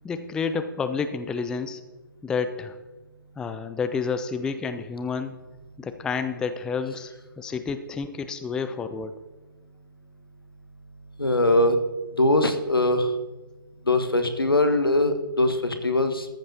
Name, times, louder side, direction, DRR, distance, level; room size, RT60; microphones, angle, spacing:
voice 1, 0.0-1.8 2.2-2.8 3.4-5.4 5.8-9.2, left 5 dB, 5° left, 9 dB, 0.4 m, -30 dB
voice 2, 11.2-11.8 12.2-13.1 13.9-16.3, left 1 dB, 80° left, 7 dB, 1.4 m, -21 dB
14.0 x 5.3 x 7.0 m, 1.2 s
figure-of-eight pair, 125°, 12 cm